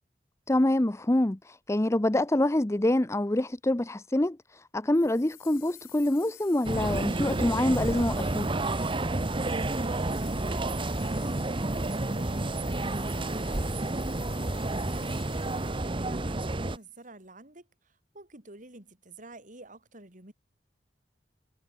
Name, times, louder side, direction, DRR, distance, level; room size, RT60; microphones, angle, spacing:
voice 1, 0.5-4.4 4.7-8.5, left 1 dB, 15° left, 0.7 m, -26 dB
sound 1, 4.9-17.0, left 14 dB, 55° left, 6.6 m, -51 dB
sound 2, 6.6-16.8, right 2 dB, 30° right, 0.9 m, -30 dB
voice 2, 9.4-20.3, right 3 dB, 45° right, 4.3 m, -49 dB
head